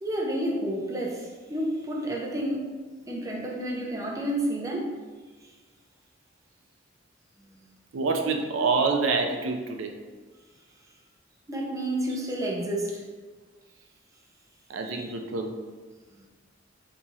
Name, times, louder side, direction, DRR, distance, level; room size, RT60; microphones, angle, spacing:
voice 1, 0.0-2.7 3.1-5.0 11.5-13.0 14.8-15.1, right 1 dB, 15° right, -1 dB, 0.5 m, -30 dB
voice 2, 7.9-9.9 12.1-12.3 14.7-15.5, right 4 dB, 80° right, 4 dB, 0.4 m, -27 dB
2.9 x 2.4 x 4.1 m, 1.4 s
head